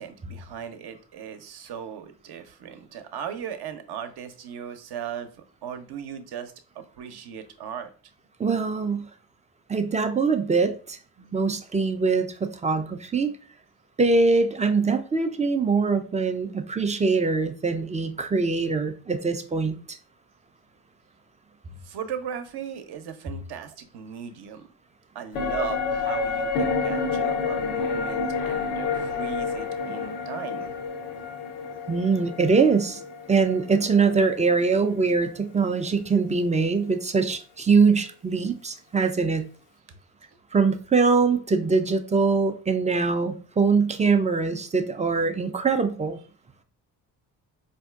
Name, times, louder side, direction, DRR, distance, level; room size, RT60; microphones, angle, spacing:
voice 1, 0.0-7.9 11.2-11.4 21.8-24.7 25.1-30.7 32.8-33.0, right 8 dB, 60° right, 0.7 m, -37 dB
voice 2, 8.4-9.1 9.7-11.0 11.3-13.4 14.0-19.8 31.9-33.0 33.3-39.5 40.5-46.2, right 4 dB, 15° right, 0.4 m, -23 dB
sound 1, 25.3-34.9 35.2-35.3, left 5 dB, 85° left, 0.7 m, -29 dB
4.3 x 2.6 x 2.3 m
supercardioid pair, 55°, 45 cm